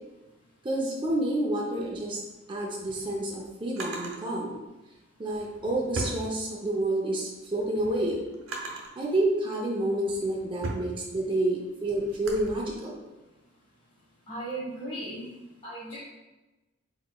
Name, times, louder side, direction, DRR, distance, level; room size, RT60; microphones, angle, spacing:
voice 1, 0.6-2.2 2.5-4.6 5.2-8.2 9.0-12.9, right 1 dB, 25° right, -3 dB, 0.5 m, -29 dB
Drawer open or close, 2.6-4.2 5.2-6.9 7.3-9.0 9.7-12.5, right 2 dB, 90° right, 0.9 m, -39 dB
voice 2, 14.3-16.0, right 1 dB, 30° left, -10 dB, 1.1 m, -37 dB
4.9 x 4.1 x 2.2 m, 1.1 s
head